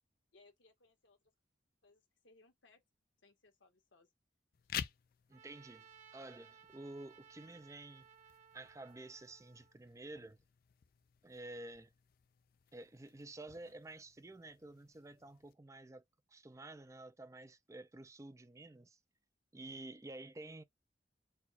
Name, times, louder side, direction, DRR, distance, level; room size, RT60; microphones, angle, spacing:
voice 1, 0.3-1.3 1.8-2.8 3.2-4.1, left 3 dB, 80° left, 1.4 m, -67 dB
sound 1, 4.5-15.5, left 9 dB, 50° left, 0.4 m, -52 dB
voice 2, 5.3-5.9 6.1-8.1 8.5-10.4 11.2-11.9 12.7-16.0 16.3-19.0 19.5-20.6, right 2 dB, 15° right, 0.4 m, -51 dB
Trumpet, 5.3-9.7, right 7 dB, 40° right, 1.1 m, -61 dB
4.3 x 2.3 x 4.1 m
head